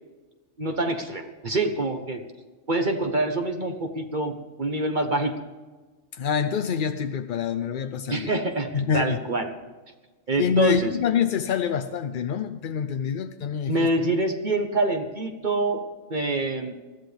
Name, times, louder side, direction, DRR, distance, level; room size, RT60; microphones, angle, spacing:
voice 1, 0.6-2.2 2.7-5.3 8.1-9.5 10.3-10.9 13.7-15.8 16.1-16.7, right 2 dB, 35° right, 5 dB, 1.2 m, -26 dB
voice 2, 6.1-8.3 8.7-9.2 10.4-13.9, left 7 dB, 60° left, 7 dB, 0.5 m, -26 dB
20.5 x 14.0 x 3.4 m, 1.3 s
omnidirectional pair, 1.4 m